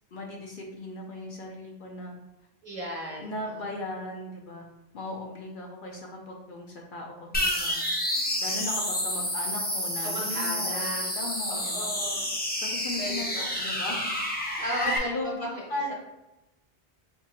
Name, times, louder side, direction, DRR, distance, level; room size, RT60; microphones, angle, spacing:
voice 1, 0.1-2.2 3.2-4.6 4.9-7.8 8.4-11.9 12.2-12.3 12.6-14.1 14.6-14.7 15.0-15.9, left 1 dB, 60° left, 0 dB, 0.7 m, -37 dB
voice 2, 2.6-3.6 10.0-12.2 13.0-13.6 14.6-15.6, equal, 35° right, -4 dB, 0.9 m, -36 dB
sound 1, 7.3-15.0, left 1 dB, 15° left, 0.3 m, -29 dB
4.4 x 2.4 x 2.8 m, 0.96 s
omnidirectional pair, 1.1 m